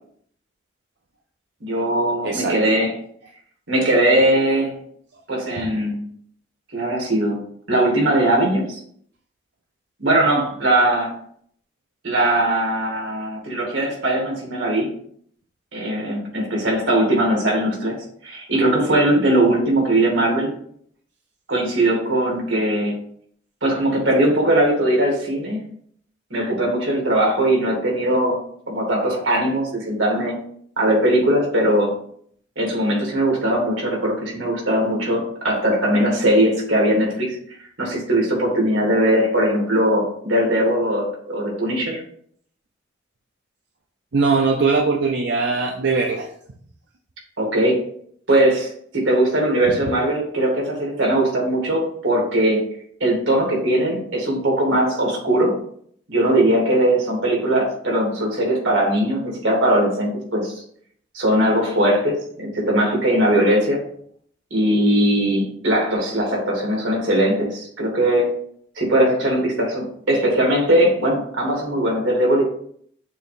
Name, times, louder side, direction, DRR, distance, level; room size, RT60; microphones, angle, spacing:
voice 1, 1.6-2.9 3.7-4.7 5.3-6.0 6.7-7.4 7.7-8.8 10.0-11.1 12.0-14.9 15.7-18.0 18.2-20.5 21.5-23.0 23.6-25.6 26.3-28.4 28.7-30.3 30.8-31.9 32.6-37.4 37.8-42.0 47.4-47.8 48.3-52.6 53.0-55.5 56.1-60.6 61.1-63.8 64.5-68.3 68.8-72.4, right 1 dB, 90° right, -1 dB, 2.4 m, -20 dB
voice 2, 2.2-2.6 44.1-46.3 49.7-49.8, right 4 dB, 70° right, 2 dB, 0.6 m, -20 dB
6.7 x 2.9 x 5.2 m, 0.64 s
head